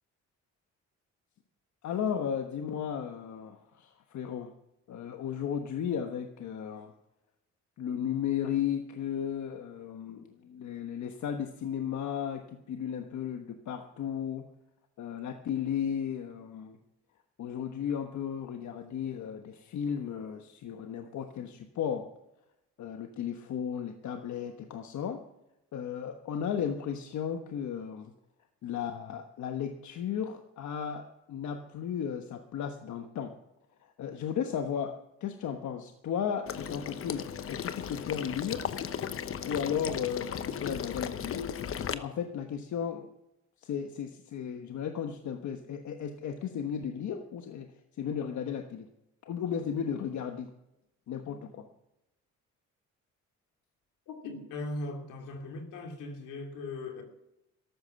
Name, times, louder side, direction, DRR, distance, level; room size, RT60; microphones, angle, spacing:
voice 1, 1.8-4.5 4.9-6.9 7.8-14.4 15.0-16.8 17.4-22.1 22.8-25.2 25.7-28.1 28.6-33.3 33.8-34.9 35.2-38.7 39.4-41.6 41.9-43.1 43.6-48.9 49.2-50.5 51.1-51.7, left 8 dB, 70° left, 5 dB, 1.3 m, -35 dB
Water / Liquid, 36.5-41.9, left 8 dB, 45° left, 0.9 m, -36 dB
voice 2, 54.1-57.0, left 2 dB, 90° left, 3 dB, 2.9 m, -39 dB
13.5 x 12.0 x 5.8 m, 0.87 s
cardioid pair, 90°, 30 cm